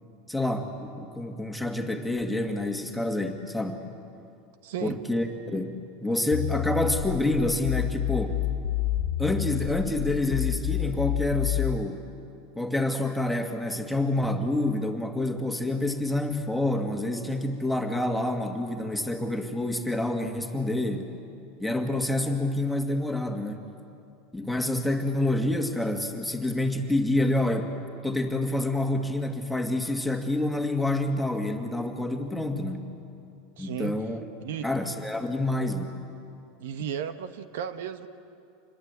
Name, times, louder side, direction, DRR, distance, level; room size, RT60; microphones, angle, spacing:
voice 1, 0.3-3.8 4.8-8.4 9.2-12.0 12.6-21.1 21.6-23.7 24.3-27.7 28.0-32.9 33.6-34.2 34.6-35.9, left 1 dB, ahead, 3 dB, 2.0 m, -28 dB
voice 2, 4.6-5.0 33.6-33.9 34.4-34.7 36.6-38.1, right 9 dB, 80° right, 10 dB, 1.2 m, -34 dB
sound 1, 6.3-11.8, left 13 dB, 90° left, 1.9 m, -28 dB
26.5 x 21.0 x 8.2 m, 2.6 s
supercardioid pair, 140°, 0 cm